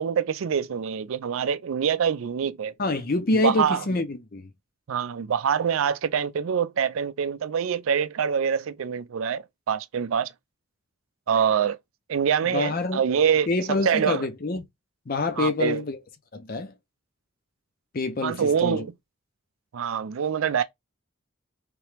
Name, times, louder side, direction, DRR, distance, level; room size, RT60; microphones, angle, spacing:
voice 1, 0.0-2.7 3.3-3.8 4.9-10.3 11.3-11.8 12.1-13.5 13.8-14.3 15.4-15.8 18.2-18.9 19.7-20.6, right 7 dB, 80° right, 0.4 m, -25 dB
voice 2, 2.8-4.5 12.5-13.0 13.5-14.6 15.1-16.0 16.3-16.7 17.9-18.9, left 2 dB, 45° left, 0.6 m, -26 dB
3.4 x 3.0 x 3.2 m
head